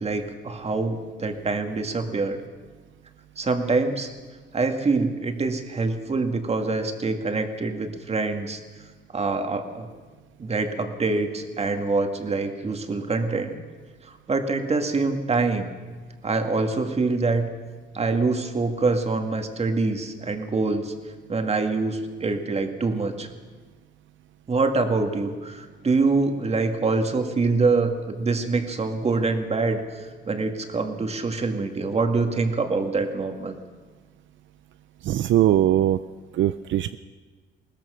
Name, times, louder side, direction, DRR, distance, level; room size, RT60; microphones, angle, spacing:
voice 1, 0.0-2.4 3.4-4.1 4.5-8.6 9.1-9.9 10.4-13.6 14.3-15.7 16.2-17.5 17.9-20.9 21.3-23.3 24.5-33.5, right 3 dB, 30° right, 5 dB, 2.0 m, -25 dB
voice 2, 35.0-36.0 36.3-37.0, right 12 dB, 70° right, 12 dB, 0.6 m, -21 dB
21.5 x 19.0 x 6.4 m, 1.4 s
cardioid pair, 120°, 20 cm